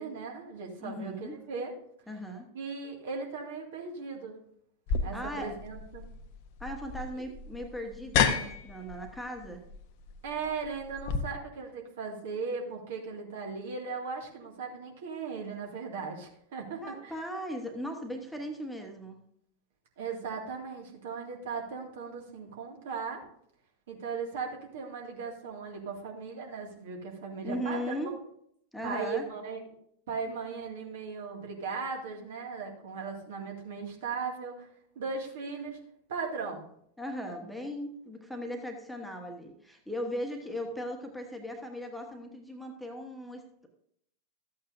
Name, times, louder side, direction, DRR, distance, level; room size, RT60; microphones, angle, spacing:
voice 1, 0.0-1.7 2.5-4.4 5.0-6.1 7.1-7.2 10.2-17.1 20.0-23.2 23.9-28.0 28.8-29.6 30.1-34.7 35.0-35.8 36.1-36.7, right 5 dB, 55° right, 1 dB, 2.1 m, -37 dB
voice 2, 0.8-1.4 2.1-2.5 5.1-5.5 6.6-9.6 16.8-19.2 27.4-28.2 28.7-29.3 37.0-43.7, equal, ahead, 3 dB, 1.3 m, -38 dB
sound 1, 4.9-11.2, left 6 dB, 45° left, 0.8 m, -32 dB
13.5 x 8.6 x 2.6 m, 0.69 s
figure-of-eight pair, 90°, 0 cm